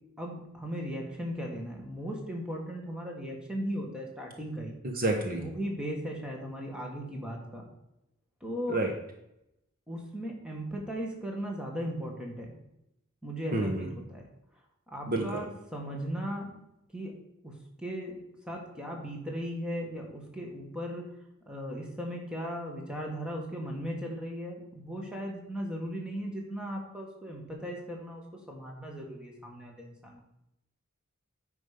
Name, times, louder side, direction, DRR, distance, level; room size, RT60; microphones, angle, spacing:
voice 1, 0.2-4.8 5.4-7.7 8.4-8.8 9.9-12.6 13.2-14.2 14.9-16.5 16.9-17.1 17.4-18.2 18.5-21.0 21.5-28.2 28.5-30.3, equal, 5° right, -1 dB, 1.7 m, -37 dB
voice 2, 4.8-5.4 8.7-8.9 13.5-13.9 15.1-15.4, right 2 dB, 45° right, 3 dB, 1.1 m, -29 dB
9.3 x 5.3 x 5.2 m, 0.83 s
head